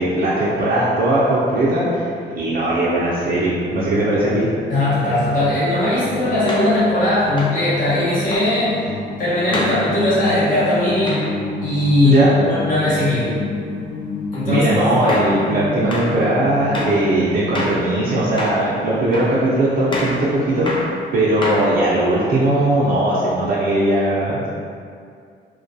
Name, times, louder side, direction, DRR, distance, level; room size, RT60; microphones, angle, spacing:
voice 1, 0.0-2.1 2.4-4.5 12.0-12.3 14.5-24.6, right 1 dB, 50° right, -8 dB, 0.5 m, -19 dB
sound 1, 1.6-17.5, left 4 dB, 80° left, 0.5 m, -31 dB
voice 2, 4.7-8.8 9.2-11.2 11.6-13.4 14.3-14.7, left 1 dB, 45° left, -11 dB, 0.9 m, -18 dB
sound 2, 5.4-5.5 6.5-6.7 7.4-7.6 8.3-8.5 9.5-9.8 11.1-11.3 14.3-14.5 15.1-15.3 15.9-16.1 16.7-17.0 17.5-17.8 18.4-18.6 19.1-19.4 19.9-20.2 20.7-20.9 21.4-21.9, left 1 dB, 25° left, 0.5 m, -26 dB
2.2 x 2.2 x 2.6 m, 2.3 s
cardioid pair, 90°, 20 cm